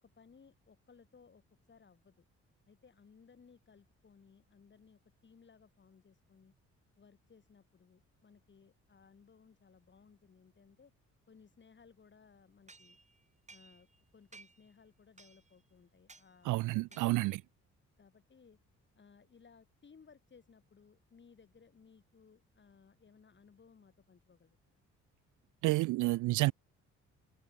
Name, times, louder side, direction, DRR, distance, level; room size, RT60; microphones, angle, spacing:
voice 1, 0.0-1.4 1.7-2.2 2.7-6.5 7.0-10.9 11.3-13.0 13.5-13.9 14.1-17.2 18.0-18.6 19.0-24.6, left 5 dB, 40° left, 4.1 m, -62 dB
sound 1, 12.7-14.0 14.3-14.7 15.2-15.6 16.1-16.3 16.9-17.4, right 3 dB, 25° right, 4.6 m, -58 dB
voice 2, 16.5-17.4 25.6-26.5, right 20 dB, 80° right, 0.5 m, -29 dB
cardioid pair, 90°, 30 cm